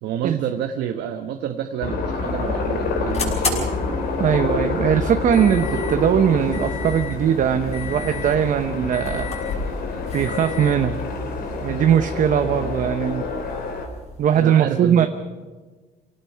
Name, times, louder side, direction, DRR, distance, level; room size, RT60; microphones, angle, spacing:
voice 1, 0.0-3.7 12.4-12.7 14.3-15.1, right 10 dB, 80° right, 5 dB, 1.3 m, -28 dB
sound 1, 1.8-13.9, left 3 dB, 60° left, 3.6 m, -27 dB
sound 2, 1.9-14.4, left 4 dB, 35° left, 5.9 m, -35 dB
voice 2, 4.2-9.3 10.1-11.0 11.6-13.2 14.2-15.1, right 9 dB, 50° right, 8 dB, 0.9 m, -20 dB
sound 3, 5.5-7.0, left 3 dB, 85° left, 4.6 m, -43 dB
26.0 x 17.5 x 5.8 m, 1.3 s
cardioid pair, 145°, 18 cm